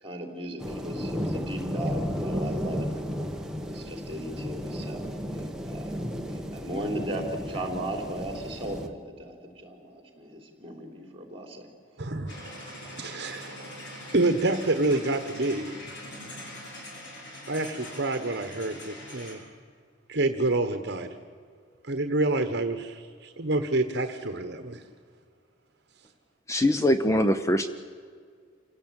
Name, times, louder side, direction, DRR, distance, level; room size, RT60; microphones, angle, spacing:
voice 1, 0.0-3.1 3.6-5.1 5.7-6.0 6.5-11.7, right 1 dB, 30° right, 4 dB, 3.9 m, -36 dB
sound 1, 0.6-8.9, equal, 5° right, 1.3 m, -33 dB
voice 2, 12.0-15.8 17.5-19.4 20.1-21.1 21.8-24.8, right 2 dB, 60° right, 8 dB, 1.3 m, -28 dB
sound 2, 12.3-19.4, left 1 dB, 65° left, 6.5 m, -43 dB
voice 3, 26.5-27.7, left 1 dB, 15° left, 9 dB, 0.8 m, -22 dB
28.0 x 17.5 x 9.0 m, 2.1 s
head